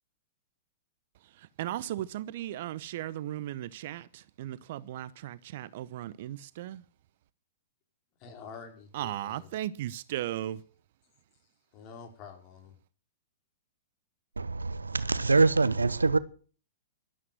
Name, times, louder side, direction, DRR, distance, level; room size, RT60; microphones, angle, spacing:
voice 1, 1.3-6.8 8.9-10.6, right 13 dB, 55° right, 0.9 m, -36 dB
voice 2, 8.2-9.5 11.7-12.7, left 6 dB, 40° left, 4.8 m, -47 dB
voice 3, 14.4-16.2, right 3 dB, 85° right, 0.8 m, -24 dB
13.0 x 12.5 x 7.7 m
figure-of-eight pair, 110°, 0 cm